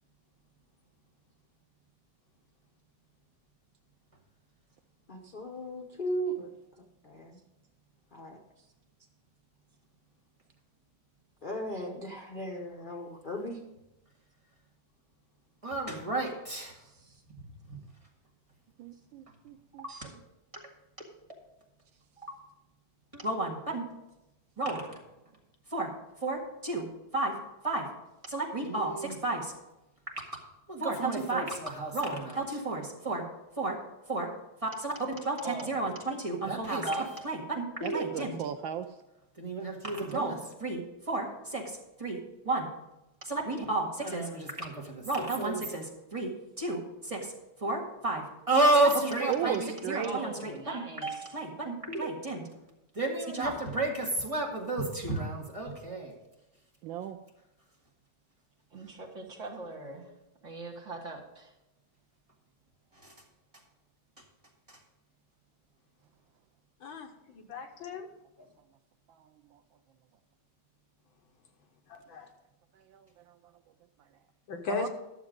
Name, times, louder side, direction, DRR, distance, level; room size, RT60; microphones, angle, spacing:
voice 1, 5.1-6.5 6.8-7.4 8.1-8.4 11.4-13.6, right 1 dB, 50° left, 1 dB, 0.6 m, -37 dB
voice 2, 15.6-16.8 17.7-17.8 19.8-20.1 20.5-20.6 23.1-23.8 24.6-25.0 25.7-25.9 26.2-26.9 27.1-27.3 27.6-27.9 28.3-29.5 30.7-33.2 33.6-33.8 34.1-34.3 34.6-38.4 39.4-42.7 43.2-47.3 47.6-52.5 52.9-56.1 63.0-63.1 64.7-64.8, right 2 dB, 15° right, -2 dB, 1.7 m, -31 dB
voice 3, 16.8-17.2 35.4-35.9 50.0-51.3 58.7-60.1 60.4-61.5, right 2 dB, 40° right, -1 dB, 1.7 m, -42 dB
voice 4, 18.8-19.9 37.8-38.9 49.3-50.2 56.8-57.2 69.1-69.2 69.5-69.6 72.9-73.1 74.7-74.9, right 9 dB, 75° right, 8 dB, 1.2 m, -35 dB
voice 5, 66.8-68.1 68.4-68.5 71.9-72.3 74.5-74.9, left 4 dB, 70° left, 5 dB, 1.7 m, -37 dB
12.0 x 7.0 x 5.1 m, 0.95 s
omnidirectional pair, 2.3 m